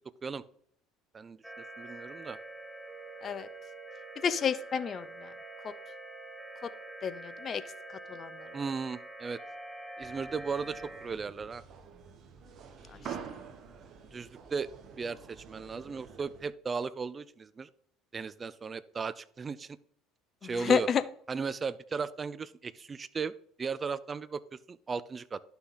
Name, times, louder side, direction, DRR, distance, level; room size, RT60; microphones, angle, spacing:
Attack on earth, 1.4-11.1, right 2 dB, ahead, 1.1 m, -46 dB
voice 1, 1.8-2.4 8.5-9.4 10.0-11.6 14.0-14.7 15.0-17.7 18.1-19.8 20.4-20.9 21.3-25.4, right 5 dB, 30° right, 17 dB, 0.5 m, -36 dB
voice 2, 4.2-5.3 5.6-5.7 6.6-6.7 7.0-7.6 8.1-8.3 13.1-13.2 20.4-21.0, left 7 dB, 40° left, 15 dB, 0.7 m, -30 dB
sound 1, 10.0-16.5, right 7 dB, 50° right, 1.5 m, -47 dB
11.5 x 5.9 x 4.1 m, 0.65 s
supercardioid pair, 90°, 0 cm